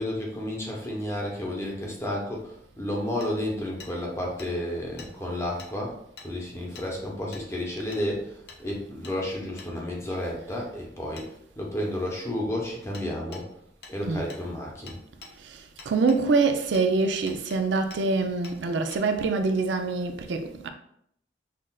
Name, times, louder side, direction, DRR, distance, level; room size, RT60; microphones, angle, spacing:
voice 1, 0.0-6.0 6.2-8.3 8.6-11.3 11.6-13.5 13.9-15.0, left 1 dB, 15° left, 0.8 m, -31 dB
Hammer, 3.2-3.3 3.8-3.9 4.4-4.5 5.0-5.1 5.6-5.7 6.2-6.3 6.7-6.9 7.3-7.5 7.9-8.0 8.5-8.6 9.0-9.2 9.6-9.7 11.2-11.3 12.9-13.1 13.3-13.4 13.8-14.0 14.3-14.4 14.9-15.3 15.8-16.2 16.7-16.9 17.3-17.6 17.9-18.0 18.4-18.6 18.9-19.0, left 4 dB, 65° left, 0.7 m, -45 dB
voice 2, 15.4-20.7, right 4 dB, 80° right, 0.4 m, -25 dB
5.8 x 2.4 x 2.3 m
head